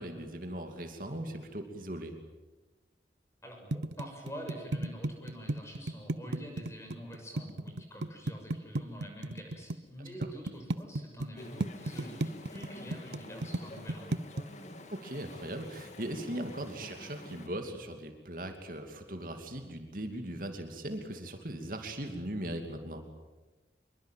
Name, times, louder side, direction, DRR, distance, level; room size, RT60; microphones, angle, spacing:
voice 1, 0.0-2.2 10.2-10.3 14.9-23.1, right 1 dB, 50° right, 5 dB, 2.7 m, -39 dB
voice 2, 3.4-14.2, equal, 15° left, 3 dB, 6.8 m, -46 dB
sound 1, 3.7-9.7 10.2-11.3 11.6-14.4, right 2 dB, 80° right, 0.9 m, -33 dB
Chatter / Stream, 11.3-17.5, left 1 dB, 40° left, 2.9 m, -48 dB
26.0 x 23.0 x 9.2 m, 1.2 s
head